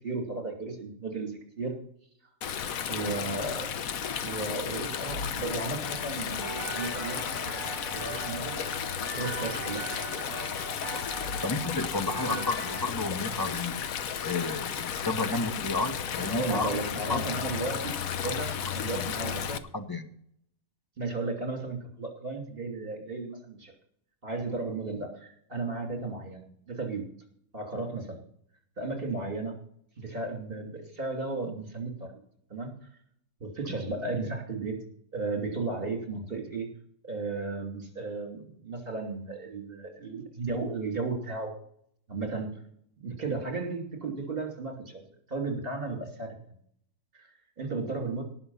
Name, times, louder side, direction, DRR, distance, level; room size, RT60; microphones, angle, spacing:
voice 1, 0.0-1.8 2.9-3.8 4.2-8.6 9.1-9.8 12.2-12.4 16.3-19.6 21.0-23.7 24.2-27.1 27.5-28.2 28.8-29.6 30.0-32.2 32.5-32.7 33.4-34.8 35.1-36.7 37.0-41.5 42.1-42.5 43.0-46.4 47.1-47.3 47.6-48.2, right 3 dB, 35° right, 1 dB, 3.0 m, -34 dB
Stream, 2.4-19.6, left 8 dB, 65° left, 1.2 m, -34 dB
sound 1, 5.8-12.8, right 2 dB, 15° right, 2.2 m, -40 dB
voice 2, 11.4-13.8 14.2-16.8 17.1-17.3 18.3-18.4 19.0-19.1 19.7-20.1, left 3 dB, 20° left, 8 dB, 0.7 m, -32 dB
18.5 x 6.2 x 5.7 m, 0.66 s
omnidirectional pair, 1.7 m